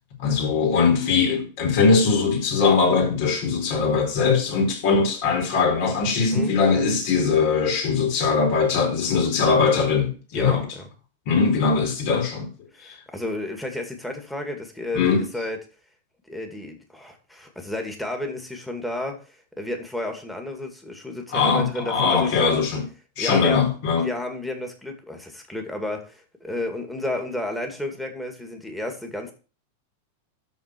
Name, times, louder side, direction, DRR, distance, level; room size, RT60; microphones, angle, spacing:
voice 1, 0.2-10.7 11.3-12.5 12.8-12.9 14.9-15.3 21.3-22.8 23.2-24.1, left 5 dB, 55° left, 4.5 m, -21 dB
voice 2, 10.3-10.8 12.7-15.6 16.3-22.6 23.2-23.7 23.9-29.3, left 1 dB, 5° left, 2.2 m, -32 dB
13.0 x 4.5 x 4.5 m
supercardioid pair, 135°, 0 cm